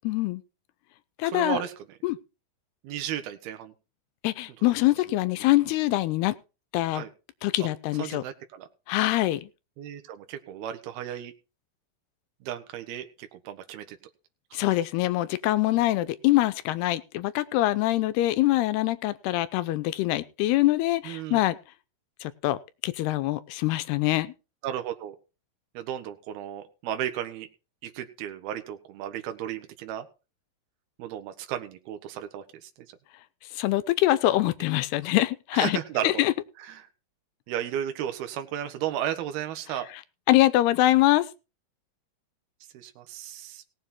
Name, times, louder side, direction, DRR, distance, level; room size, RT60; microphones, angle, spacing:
voice 1, 0.0-0.4 1.2-1.6 2.0-2.2 4.2-6.3 6.7-7.0 7.4-8.2 8.9-9.4 14.5-21.6 22.2-22.6 22.8-24.3 33.6-35.8 36.0-36.3 40.3-41.3, left 16 dB, 85° left, 13 dB, 2.8 m, -24 dB
voice 2, 1.2-1.7 2.8-3.7 6.9-7.1 7.6-7.7 8.0-8.7 9.8-11.3 12.4-14.0 14.6-14.7 15.7-15.9 21.0-21.4 24.6-25.2 25.7-27.5 27.8-30.1 31.0-32.7 35.5-36.2 36.6-36.9 37.5-39.9 42.7-43.6, right 10 dB, 75° right, 7 dB, 3.1 m, -34 dB
18.0 x 7.5 x 4.3 m, 0.31 s
omnidirectional pair, 4.5 m